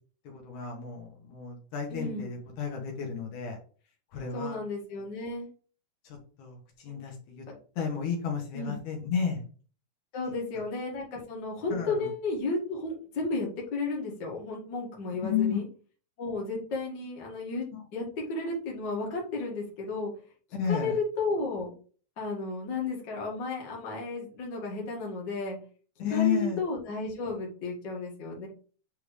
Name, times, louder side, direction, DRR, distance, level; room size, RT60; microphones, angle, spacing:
voice 1, 0.2-3.6 4.1-4.6 6.0-7.4 7.8-9.4 11.7-12.1 15.2-15.6 20.5-21.0 26.0-26.6, left 7 dB, 75° left, 0 dB, 3.0 m, -32 dB
voice 2, 1.9-2.3 4.3-5.5 8.5-8.8 10.1-15.7 16.2-17.7 17.9-20.1 20.6-21.7 22.2-25.6 26.1-28.5, left 3 dB, 40° left, -3 dB, 2.3 m, -33 dB
8.7 x 3.5 x 3.3 m, 0.40 s
omnidirectional pair, 3.6 m